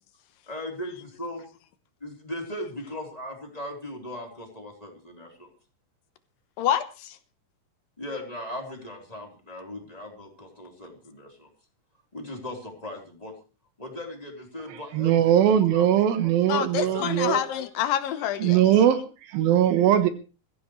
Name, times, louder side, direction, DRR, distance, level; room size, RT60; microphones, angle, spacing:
voice 1, 0.5-1.4 2.0-5.5 8.0-11.5 12.1-13.3 13.8-15.2 15.7-15.9 16.2-16.3, left 1 dB, 10° left, 0 dB, 3.5 m, -38 dB
voice 2, 6.6-7.2 16.5-18.6, left 10 dB, 80° left, 11 dB, 2.9 m, -27 dB
voice 3, 14.7-17.4 18.4-20.1, right 10 dB, 90° right, 10 dB, 3.0 m, -21 dB
22.0 x 15.0 x 3.2 m, 0.34 s
omnidirectional pair, 4.0 m